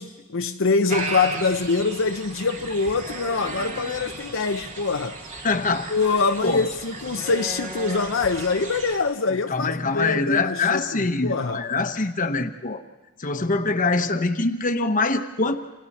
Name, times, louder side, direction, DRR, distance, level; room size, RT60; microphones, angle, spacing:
voice 1, 0.0-5.2 5.9-11.6, left 4 dB, 65° left, 0.7 m, -24 dB
sound 1, 0.9-9.0, right 2 dB, 40° right, 2.4 m, -35 dB
voice 2, 5.4-5.9 6.4-6.6 9.5-12.8 13.2-15.5, left 3 dB, 40° left, 1.1 m, -24 dB
28.5 x 27.0 x 4.3 m
head